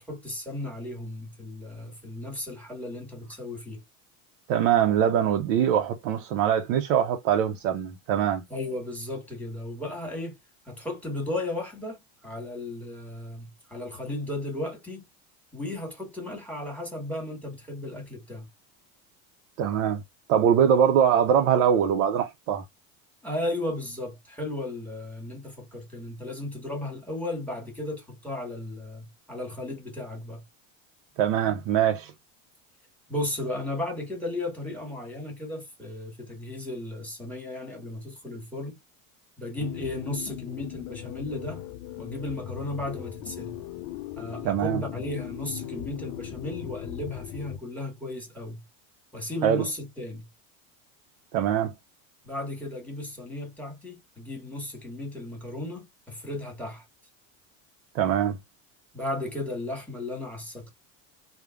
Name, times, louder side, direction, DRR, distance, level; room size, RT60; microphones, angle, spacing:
voice 1, 0.0-3.8 8.5-10.4 10.7-15.0 15.5-18.5 23.2-30.4 33.1-38.8 39.4-41.6 42.0-43.6 44.2-48.6 49.1-50.3 52.2-56.8 58.9-60.7, left 1 dB, 5° left, 1.4 m, -35 dB
voice 2, 4.5-8.4 19.6-20.0 20.3-22.6 31.2-32.1 44.4-44.8 49.4-49.6 51.3-51.7 57.9-58.4, right 9 dB, 70° right, 0.7 m, -23 dB
sound 1, 39.6-47.6, left 12 dB, 85° left, 0.5 m, -38 dB
3.2 x 2.1 x 2.3 m
supercardioid pair, 120°, 38 cm